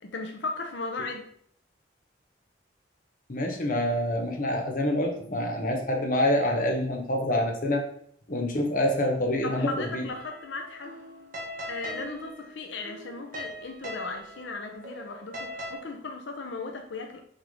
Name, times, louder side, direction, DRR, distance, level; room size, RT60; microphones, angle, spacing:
voice 1, 0.0-1.3 9.4-10.9 11.7-17.2, left 3 dB, 85° left, 4 dB, 0.7 m, -36 dB
voice 2, 3.3-7.9 8.3-10.0, left 1 dB, 45° left, 1 dB, 1.2 m, -26 dB
sound 1, 10.1-15.8, equal, 45° right, 1.3 m, -41 dB
6.4 x 3.5 x 5.3 m, 0.64 s
head